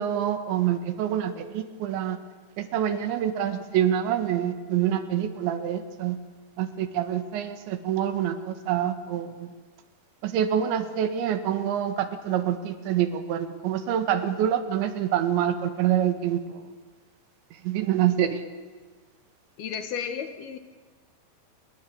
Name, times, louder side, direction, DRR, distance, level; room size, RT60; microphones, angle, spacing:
voice 1, 0.0-2.2 2.6-6.2 6.6-9.5 10.2-16.6 17.6-18.4, right 10 dB, 80° right, 9 dB, 4.0 m, -26 dB
voice 2, 19.6-20.6, left 7 dB, 65° left, 8 dB, 3.3 m, -33 dB
27.0 x 22.0 x 8.7 m, 1.4 s
omnidirectional pair, 5.2 m